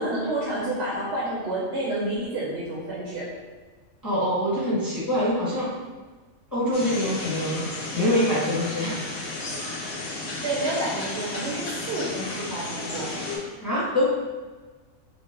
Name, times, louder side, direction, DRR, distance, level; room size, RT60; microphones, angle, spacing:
voice 1, 0.0-3.3 10.4-13.2, right 1 dB, 60° right, -5 dB, 0.9 m, -29 dB
voice 2, 4.0-5.7 6.5-7.7 7.9-9.0 9.3-10.0 13.6-14.1, left 1 dB, 15° left, -9 dB, 1.0 m, -25 dB
sound 1, 6.7-13.4, left 2 dB, 85° left, 1.1 m, -33 dB
4.2 x 2.1 x 3.2 m, 1.3 s
omnidirectional pair, 1.4 m